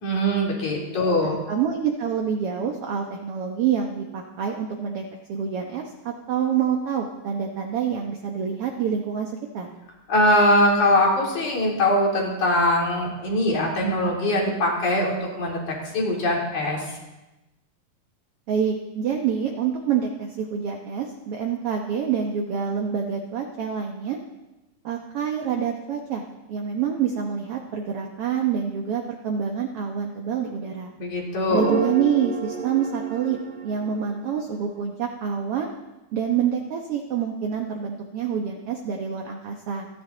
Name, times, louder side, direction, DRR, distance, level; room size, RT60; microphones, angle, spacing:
voice 1, 0.0-1.4 10.1-16.8 31.0-31.7, left 1 dB, 55° left, -2 dB, 4.6 m, -22 dB
voice 2, 1.0-5.0 5.3-5.8 6.3-9.7 18.5-24.2 24.8-26.2 26.5-30.9 31.5-35.7 36.1-39.9, right 7 dB, 65° right, 1 dB, 1.5 m, -27 dB
sound 1, 31.5-34.8, right 5 dB, 45° right, 1.7 m, -30 dB
27.5 x 10.5 x 3.9 m, 1.0 s
omnidirectional pair, 4.1 m